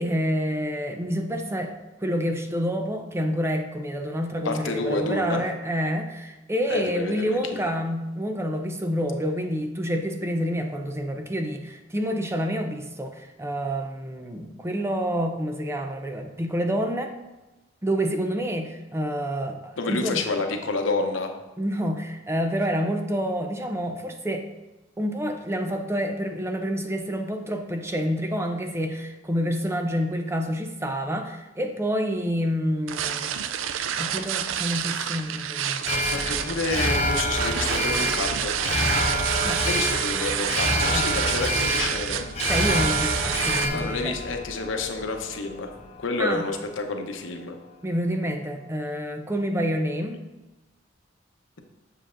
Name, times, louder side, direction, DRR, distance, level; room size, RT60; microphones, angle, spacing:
voice 1, 0.0-1.7 2.0-17.1 17.8-20.2 21.6-24.5 25.0-33.4 33.9-35.9 39.4-39.6 40.9-41.1 42.5-44.2 46.2-46.4 47.8-50.2, equal, 15° right, 5 dB, 0.5 m, -28 dB
voice 2, 4.4-5.4 6.7-7.7 19.8-21.3 35.9-38.5 39.6-42.2 43.7-45.7 46.0-47.6, left 3 dB, 90° left, 4 dB, 0.8 m, -29 dB
sound 1, 32.9-43.7, right 9 dB, 90° right, 0.4 m, -28 dB
Alarm, 35.9-46.1 46.5-46.6, equal, 35° left, 0.7 m, -27 dB
7.5 x 6.6 x 2.5 m, 1.1 s
head